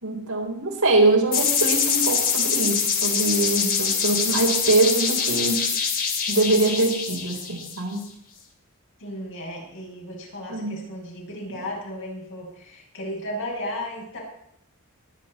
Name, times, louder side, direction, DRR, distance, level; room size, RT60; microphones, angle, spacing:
voice 1, 0.0-5.7 6.3-8.0 10.5-10.8, right 2 dB, 80° right, -1 dB, 4.1 m, -23 dB
sound 1, 1.3-8.0, left 6 dB, 45° left, 2.4 m, -24 dB
voice 2, 9.0-14.2, left 1 dB, 60° left, -3 dB, 6.5 m, -34 dB
22.5 x 9.4 x 4.3 m, 0.72 s
head